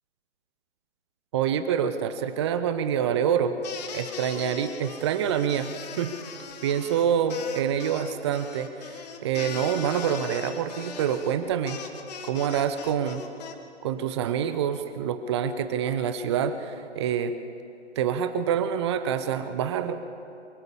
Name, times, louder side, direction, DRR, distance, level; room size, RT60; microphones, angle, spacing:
voice 1, 1.3-3.6 3.9-6.1 6.6-8.7 9.2-11.8 12.2-13.2 13.8-17.3 18.0-20.0, right 8 dB, 25° right, 11 dB, 0.7 m, -26 dB
sound 1, 3.6-13.5, left 6 dB, 35° left, 1.7 m, -40 dB
24.0 x 16.5 x 7.0 m, 2.7 s
figure-of-eight pair, 135°, 34 cm